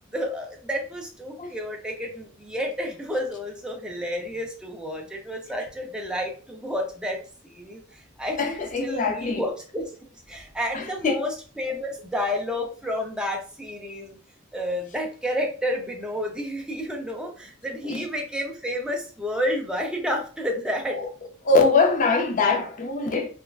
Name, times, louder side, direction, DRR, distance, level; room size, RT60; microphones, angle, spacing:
voice 1, 0.1-7.2 7.4-9.9 10.3-14.2 14.5-21.0, equal, 5° right, 0.5 m, -30 dB
voice 2, 8.4-9.4 10.7-11.2 17.8-18.1 21.0-21.1 21.4-23.3, left 3 dB, 40° left, 0.5 m, -23 dB
3.3 x 2.1 x 2.3 m
head